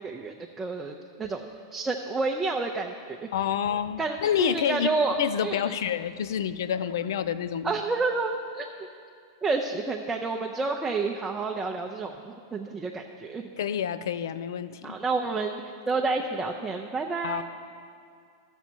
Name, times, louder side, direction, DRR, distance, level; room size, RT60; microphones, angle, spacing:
voice 1, 0.0-3.3 4.0-5.8 7.6-8.7 9.4-13.5 14.8-15.6 15.9-17.4, right 3 dB, 15° right, 1 dB, 0.6 m, -30 dB
voice 2, 3.3-4.9 5.2-7.7 13.6-15.0 17.2-17.4, left 9 dB, 70° left, 13 dB, 0.4 m, -28 dB
12.5 x 7.2 x 4.5 m, 2.3 s
hypercardioid pair, 115°, 2 cm